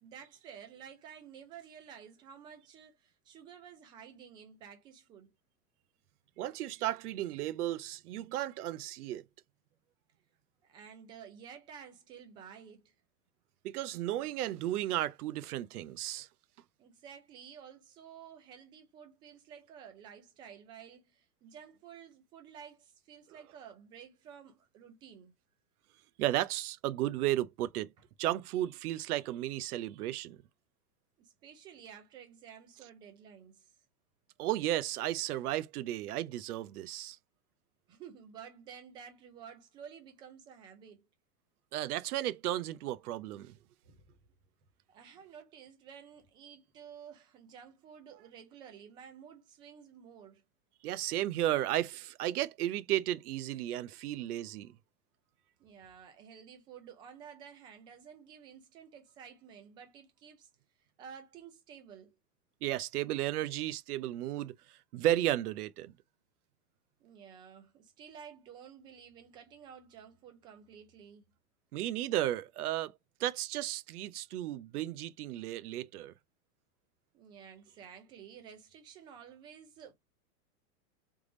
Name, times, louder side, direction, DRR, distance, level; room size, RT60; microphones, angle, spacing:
voice 1, 0.0-5.3 10.6-12.9 16.8-25.3 31.2-33.7 37.9-41.1 43.8-44.1 44.9-50.4 55.6-60.5 60.8-62.2 67.0-71.2 77.1-79.9, right 7 dB, 10° right, 0.3 m, -52 dB
voice 2, 6.4-9.2 13.6-16.3 26.2-27.9 28.2-30.4 34.4-37.2 41.7-43.6 50.8-54.7 62.6-64.5 64.9-65.9 71.7-76.1, right 13 dB, 75° right, 0.7 m, -34 dB
3.5 x 3.3 x 3.8 m
supercardioid pair, 140°, 45 cm